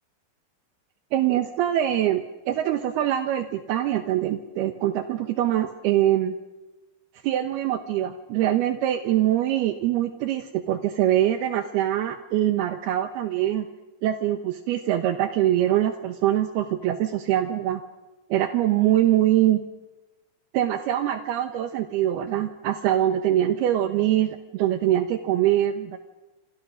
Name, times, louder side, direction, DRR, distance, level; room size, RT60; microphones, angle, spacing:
voice 1, 1.1-6.3 7.2-13.7 14.0-17.8 18.3-19.6 20.5-26.0, right 12 dB, 75° right, 9 dB, 2.9 m, -23 dB
27.0 x 26.5 x 6.3 m, 1.1 s
omnidirectional pair, 4.9 m